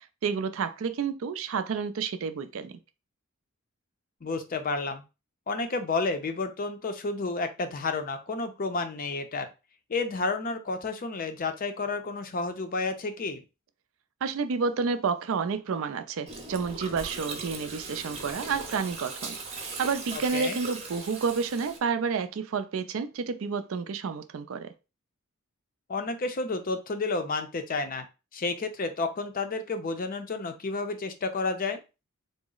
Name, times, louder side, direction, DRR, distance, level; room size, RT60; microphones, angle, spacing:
voice 1, 0.0-2.8 14.2-24.7, right 5 dB, 65° right, 0.4 m, -30 dB
voice 2, 4.2-5.0 5.5-9.5 9.9-13.4 20.1-20.6 25.9-28.1 28.3-31.8, left 3 dB, 40° left, 0.5 m, -31 dB
Gurgling, 16.3-21.8, right 3 dB, 30° right, 0.7 m, -39 dB
3.9 x 2.0 x 3.7 m
head